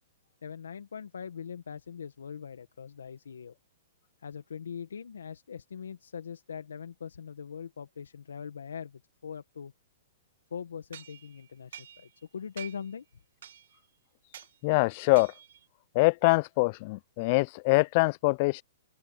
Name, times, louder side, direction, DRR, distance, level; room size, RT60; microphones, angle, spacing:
voice 1, 0.4-3.5 4.2-9.7 10.5-13.0, left 7 dB, 80° left, 1.7 m, -41 dB
sound 1, 10.9-12.3 12.6-13.0 13.4-13.9 14.3-14.6 15.2-15.7, right 10 dB, 70° right, 2.2 m, -48 dB
voice 2, 14.6-15.3 16.0-18.6, left 26 dB, 45° left, 0.5 m, -24 dB
open air
hypercardioid pair, 125°, 0 cm